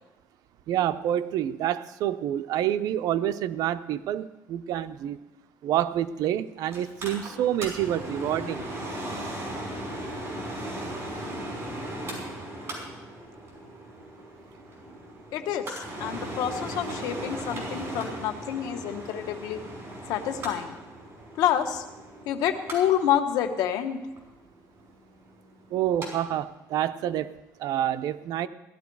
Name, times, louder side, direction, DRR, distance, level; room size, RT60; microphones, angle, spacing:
voice 1, 0.7-5.2 5.6-8.6 25.7-28.5, right 11 dB, 75° right, 12 dB, 0.6 m, -28 dB
Mechanical fan, 6.7-26.1 26.4-26.5, right 1 dB, 40° right, 5.4 m, -37 dB
voice 2, 15.3-19.6 20.1-20.7 21.4-21.8 22.3-24.0, left 10 dB, 90° left, 7 dB, 1.2 m, -28 dB
17.0 x 12.5 x 4.7 m, 1.0 s
cardioid pair, 135°, 6 cm